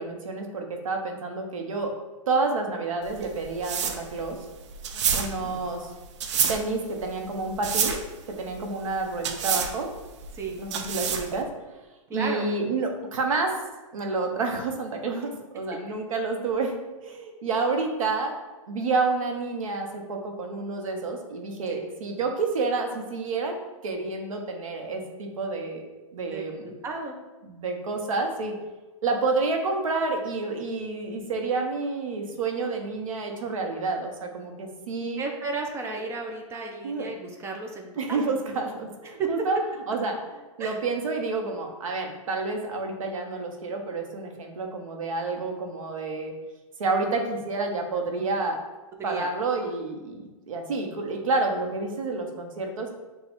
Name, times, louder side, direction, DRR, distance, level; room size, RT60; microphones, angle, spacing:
voice 1, 0.0-2.0 2.3-4.4 5.1-5.9 6.5-8.0 8.3-9.9 10.6-11.5 12.1-13.6 13.9-16.8 17.0-25.8 26.1-26.7 27.4-28.5 29.0-35.2 36.8-37.1 38.0-39.6 39.9-46.3 46.8-48.6 49.0-52.9, right 3 dB, 80° right, 3 dB, 1.0 m, -29 dB
sound 1, 3.0-11.4, right 7 dB, 60° right, 0.6 m, -29 dB
voice 2, 4.9-5.3 10.3-10.6 12.1-12.5 21.7-21.8 26.3-26.4 26.8-27.1 35.0-38.3 39.2-39.5 40.6-40.8 49.0-49.3, right 3 dB, 15° right, 2 dB, 0.5 m, -33 dB
6.2 x 2.4 x 3.6 m, 1.2 s
hypercardioid pair, 140°, 17 cm